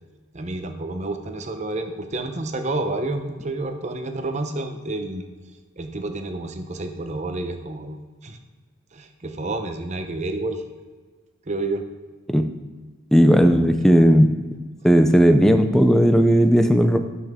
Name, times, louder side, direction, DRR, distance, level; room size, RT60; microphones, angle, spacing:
voice 1, 0.3-5.2 5.8-8.4 8.9-10.6 11.5-11.9 13.8-13.9, right 2 dB, 35° right, 6 dB, 0.8 m, -29 dB
voice 2, 13.1-14.3 14.8-17.0, equal, ahead, 7 dB, 0.5 m, -15 dB
12.0 x 5.6 x 3.6 m, 1.4 s
head